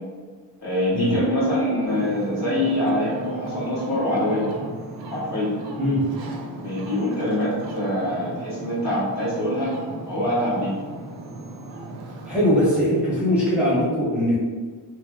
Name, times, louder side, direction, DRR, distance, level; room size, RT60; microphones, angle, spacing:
voice 1, 0.6-4.5 5.0-5.5 6.6-9.7 10.0-10.7, left 1 dB, 40° left, -9 dB, 1.4 m, -24 dB
Ocean, 1.8-12.7, right 2 dB, 60° right, 0.6 m, -36 dB
voice 2, 12.3-14.3, equal, ahead, -10 dB, 1.0 m, -21 dB
2.8 x 2.0 x 3.6 m, 1.5 s
cardioid pair, 115°, 44 cm